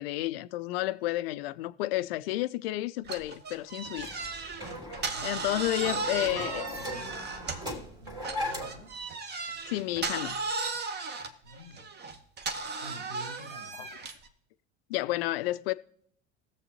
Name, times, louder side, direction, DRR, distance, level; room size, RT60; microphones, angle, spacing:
voice 1, 0.0-4.2 5.2-6.6 9.6-10.4 13.8-13.9 14.9-15.7, left 16 dB, 55° left, 0.5 m, -31 dB
sound 1, 3.0-7.8 8.2-14.3, right 4 dB, 30° right, 1.0 m, -36 dB
sound 2, 4.0-8.9, left 1 dB, 10° right, 2.4 m, -39 dB
voice 2, 4.9-9.0 11.4-11.9 12.8-13.9, equal, 70° right, 3.8 m, -49 dB
19.5 x 7.2 x 2.8 m
figure-of-eight pair, 70°, 35 cm